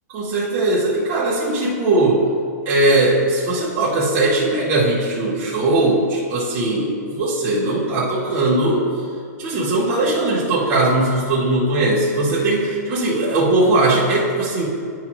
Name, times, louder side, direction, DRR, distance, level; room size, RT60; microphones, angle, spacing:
voice 1, 0.1-2.2 2.6-8.8 9.4-14.7, right 2 dB, 25° right, -9 dB, 1.1 m, -19 dB
11.5 x 4.5 x 2.9 m, 2.3 s
hypercardioid pair, 160°, 9 cm